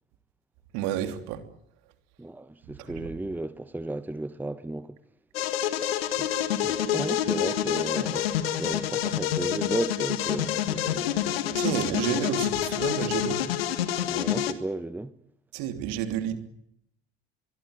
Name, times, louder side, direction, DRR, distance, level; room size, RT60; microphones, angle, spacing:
voice 1, 0.7-1.4 2.8-3.1 11.5-13.4 15.5-16.4, right 9 dB, 60° right, 3.1 m, -30 dB
voice 2, 2.2-5.0 6.1-6.3 6.6-11.1 11.7-12.3 14.1-15.1, right 2 dB, 5° right, 1.1 m, -34 dB
sound 1, 5.3-14.5, left 10 dB, 70° left, 1.9 m, -27 dB
24.0 x 22.5 x 9.3 m
figure-of-eight pair, 60°, 31 cm